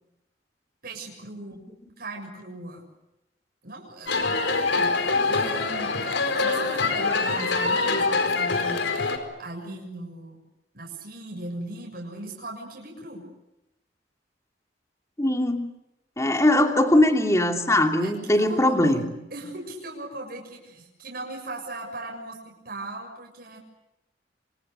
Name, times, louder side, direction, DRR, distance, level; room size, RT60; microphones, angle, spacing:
voice 1, 0.8-1.6 2.0-2.9 3.6-6.0 6.4-8.9 9.4-10.4 10.7-13.3 16.2-16.5 18.0-19.0 19.3-23.6, right 2 dB, 55° right, 0 dB, 7.2 m, -39 dB
sound 1, 4.1-9.2, left 3 dB, 90° left, 4.5 m, -24 dB
voice 2, 15.2-15.6 16.2-19.1, left 1 dB, 15° left, 3 dB, 2.9 m, -21 dB
29.0 x 26.5 x 6.8 m, 0.90 s
head